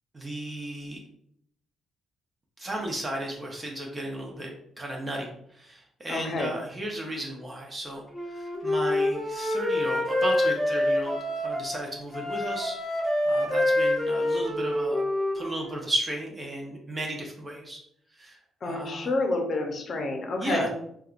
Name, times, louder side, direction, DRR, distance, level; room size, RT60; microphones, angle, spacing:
voice 1, 0.1-1.0 2.6-4.5 4.8-8.0 8.3-12.8 13.3-15.1 15.3-17.8 18.1-19.1 20.4-20.7, right 1 dB, 25° right, -1 dB, 0.7 m, -34 dB
voice 2, 6.1-6.5 18.6-20.7, left 2 dB, 50° left, 3 dB, 0.6 m, -29 dB
Wind instrument woodwind instrument, 8.1-11.8 12.1-15.7, left 1 dB, 5° left, 0.9 m, -26 dB
3.5 x 2.3 x 2.4 m, 0.70 s
cardioid pair, 90°, 0 cm